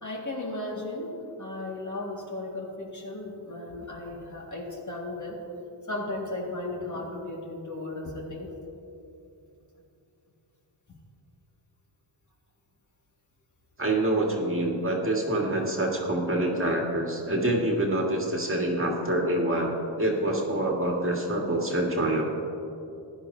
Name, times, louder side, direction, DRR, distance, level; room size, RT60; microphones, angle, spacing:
voice 1, 0.0-5.5 5.9-8.5, left 2 dB, 35° left, -1 dB, 1.9 m, -35 dB
voice 2, 13.8-22.2, right 1 dB, 25° right, 0 dB, 1.8 m, -26 dB
15.0 x 10.5 x 2.7 m, 2.8 s
cardioid pair, 65°, 49 cm